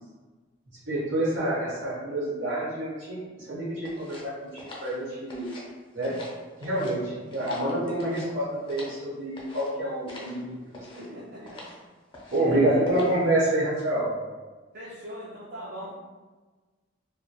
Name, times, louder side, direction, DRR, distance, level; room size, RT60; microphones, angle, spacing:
voice 1, 0.9-5.5 5.9-6.2 6.6-11.0 12.3-14.1, right 1 dB, 80° right, -6 dB, 1.0 m, -27 dB
sound 1, 3.8-5.7 6.0-7.0 7.3-9.0 9.4-9.7 10.1-10.4 10.7-11.1 11.5-11.8 12.1-12.5 12.9-13.3, left 2 dB, 25° left, 0.5 m, -45 dB
voice 2, 11.0-11.6 12.4-12.8 14.7-15.9, equal, 50° right, -7 dB, 0.4 m, -39 dB
2.2 x 2.1 x 2.9 m, 1.3 s
head